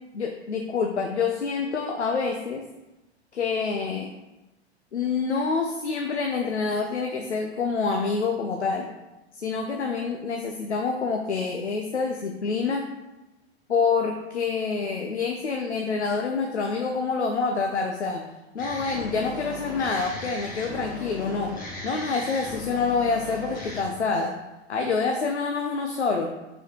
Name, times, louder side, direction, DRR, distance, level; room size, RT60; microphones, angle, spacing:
voice 1, 0.1-2.6 3.3-4.1 4.9-8.9 9.4-12.8 13.7-18.2 18.5-21.5 21.8-24.4 24.7-26.3, left 4 dB, 80° left, 3 dB, 0.7 m, -27 dB
sound 1, 18.6-23.8, left 3 dB, 25° left, 1.7 m, -37 dB
6.4 x 5.5 x 3.0 m, 1.0 s
figure-of-eight pair, 90°, 33 cm